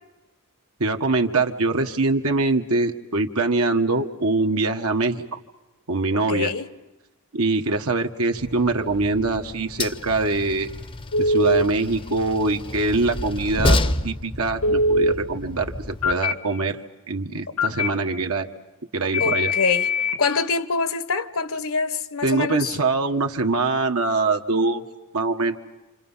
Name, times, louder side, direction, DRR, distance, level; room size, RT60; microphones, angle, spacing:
voice 1, 0.8-5.4 5.9-6.5 7.3-10.7 11.2-16.8 17.1-18.5 18.9-19.5 22.2-24.8 25.1-25.6, right 3 dB, 70° right, 1.6 m, -23 dB
voice 2, 6.1-6.7 19.2-19.9 20.2-22.8, left 4 dB, 65° left, 1.2 m, -25 dB
Train, 8.4-16.1, left 2 dB, 25° left, 0.8 m, -29 dB
Telephone, 11.1-11.6 14.6-15.1 16.0-16.3 17.6-17.9 19.1-20.2, left 1 dB, 90° left, 1.9 m, -21 dB
28.5 x 27.0 x 5.7 m
head